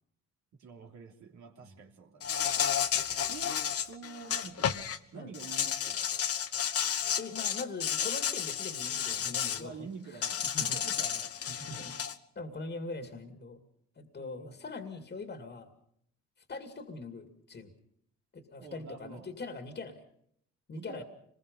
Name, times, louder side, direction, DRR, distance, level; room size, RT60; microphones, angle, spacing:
voice 1, 0.6-2.3 3.3-3.5 3.9-4.8 5.1-6.1 9.6-11.3 11.6-11.8 14.2-14.6 18.6-19.3 20.7-21.0, right 5 dB, 70° right, 2 dB, 3.2 m, -47 dB
Insect, 2.2-5.0 5.3-9.6 10.2-12.1, left 8 dB, 50° left, 1.1 m, -32 dB
voice 2, 7.2-9.8 10.1-10.2 10.5-10.8 11.5-11.9 12.4-13.6 14.0-15.7 16.5-17.7 18.3-20.0 20.7-21.0, left 3 dB, 35° left, 6 dB, 2.4 m, -42 dB
25.5 x 21.0 x 5.5 m, 0.70 s
cardioid pair, 90°, 30 cm